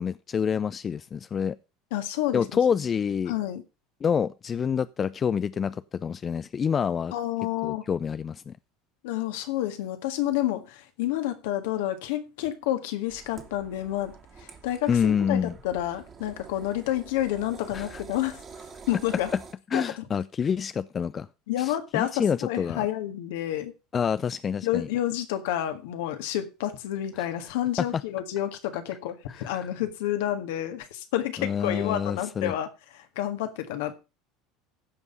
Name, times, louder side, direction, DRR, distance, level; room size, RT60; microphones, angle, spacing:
voice 1, 0.0-1.6 2.3-3.3 4.0-7.1 7.6-8.6 14.9-15.5 17.7-18.0 19.7-21.3 21.6-22.9 23.9-24.9 27.2-27.3 27.9-28.0 29.3-29.7 31.4-32.5, left 7 dB, 35° left, 0.5 m, -27 dB
voice 2, 1.9-2.6 3.3-3.6 7.1-7.8 9.0-14.1 14.6-18.4 18.9-19.3 19.7-19.8 21.5-23.7 24.6-32.7 32.9-33.9, left 13 dB, 70° left, 1.7 m, -29 dB
sound 1, 13.1-19.5, right 5 dB, 35° right, 2.6 m, -47 dB
15.5 x 5.4 x 5.3 m
hypercardioid pair, 75°, 0 cm